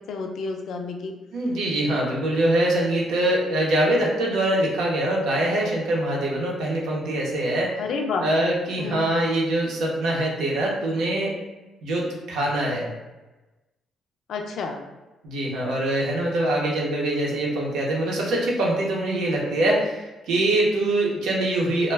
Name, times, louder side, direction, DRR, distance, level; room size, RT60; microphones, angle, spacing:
voice 1, 0.1-1.1 7.8-8.3 8.8-9.1 14.3-14.8, left 4 dB, 70° left, 3 dB, 0.4 m, -29 dB
voice 2, 1.3-7.8 8.2-11.4 11.8-12.9 15.2-21.9, right 1 dB, 85° right, -3 dB, 0.7 m, -23 dB
2.2 x 2.1 x 3.2 m, 1.1 s
cardioid pair, 90°, 0 cm